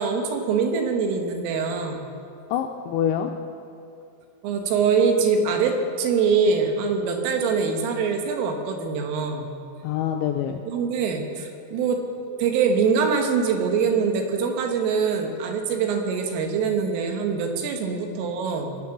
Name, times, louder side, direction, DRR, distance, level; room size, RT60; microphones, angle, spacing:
voice 1, 0.0-2.1 4.4-9.5 10.7-18.8, right 5 dB, 80° right, 4 dB, 3.8 m, -24 dB
voice 2, 2.5-3.3 9.8-10.7 17.7-18.3, left 9 dB, 85° left, 4 dB, 2.6 m, -27 dB
22.5 x 8.6 x 6.0 m, 2.4 s
omnidirectional pair, 5.9 m